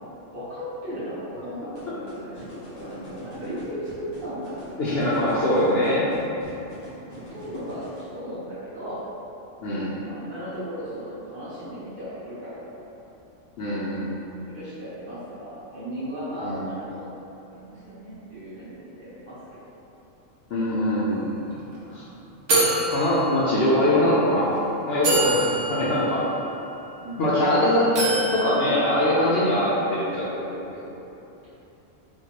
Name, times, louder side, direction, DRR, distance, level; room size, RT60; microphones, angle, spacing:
voice 1, 0.3-4.7 7.0-7.8 8.1-9.0 10.0-12.8 14.4-17.1 17.5-19.6 22.1-22.2 27.0-27.3, equal, 45° right, -12 dB, 1.3 m, -36 dB
sound 1, 1.7-8.0, equal, 90° left, 1.5 m, -43 dB
voice 2, 4.8-6.0 9.6-9.9 13.6-14.4 16.4-16.7 20.5-21.5 21.9-22.0 22.9-26.2 27.2-30.7, left 1 dB, 60° left, -8 dB, 0.8 m, -23 dB
sound 2, 21.1-21.3 21.5-21.7 22.5-23.9 24.5-24.6 25.0-27.5 28.0-29.6, right 1 dB, 90° right, 1.1 m, -27 dB
4.4 x 2.3 x 2.9 m, 3.0 s
omnidirectional pair, 1.3 m